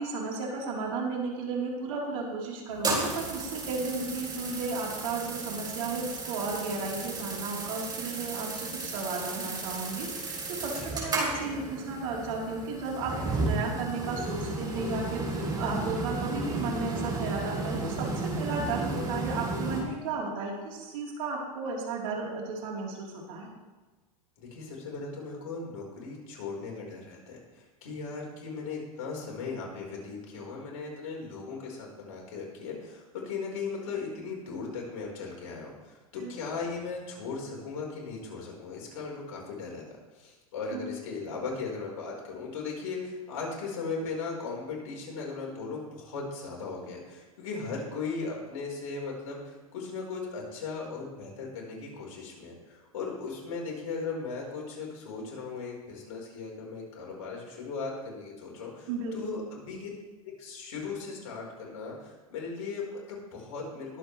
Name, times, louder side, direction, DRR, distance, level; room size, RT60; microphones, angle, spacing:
voice 1, 0.0-13.1 13.4-18.1 18.4-23.5 36.2-36.3 40.7-40.9 58.9-59.4, right 4 dB, 65° right, -3 dB, 3.8 m, -34 dB
sound 1, 2.7-19.8, right 2 dB, 20° right, 4.0 m, -34 dB
voice 2, 24.4-39.8 40.1-59.9 60.2-64.0, left 4 dB, 65° left, -1 dB, 4.5 m, -37 dB
21.5 x 7.7 x 3.3 m, 1.2 s
hypercardioid pair, 100°, 18 cm